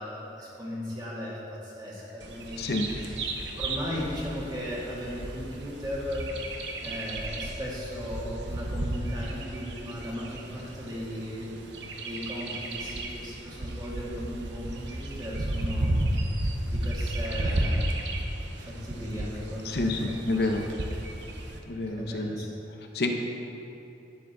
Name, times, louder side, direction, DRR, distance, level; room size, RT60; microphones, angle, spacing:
voice 1, 0.0-3.3 3.6-6.3 6.8-11.6 12.0-16.1 16.7-17.8 18.6-20.5 21.9-22.5, equal, 25° right, -7 dB, 2.5 m, -37 dB
Bird vocalization bird call bird song, 2.2-21.6, right 1 dB, 85° right, 1.0 m, -33 dB
voice 2, 19.6-20.6 21.7-22.3 22.9-23.1, left 2 dB, 60° left, 3 dB, 0.8 m, -28 dB
11.5 x 9.9 x 3.9 m, 2.8 s
head